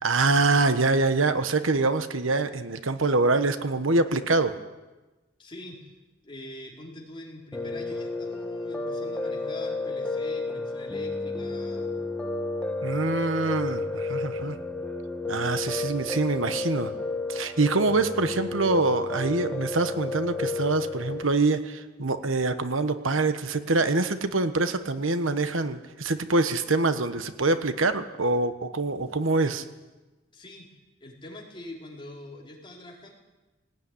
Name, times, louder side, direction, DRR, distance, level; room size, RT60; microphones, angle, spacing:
voice 1, 0.0-4.6 12.8-14.6 15.3-16.9 17.3-29.6, right 3 dB, 85° right, 10 dB, 1.3 m, -25 dB
voice 2, 5.4-5.9 6.2-11.9 30.3-30.7 31.0-33.1, left 1 dB, 25° left, -2 dB, 4.8 m, -44 dB
Piano, 7.5-21.2, left 2 dB, 5° left, 1.8 m, -32 dB
18.5 x 18.5 x 9.9 m, 1.2 s
head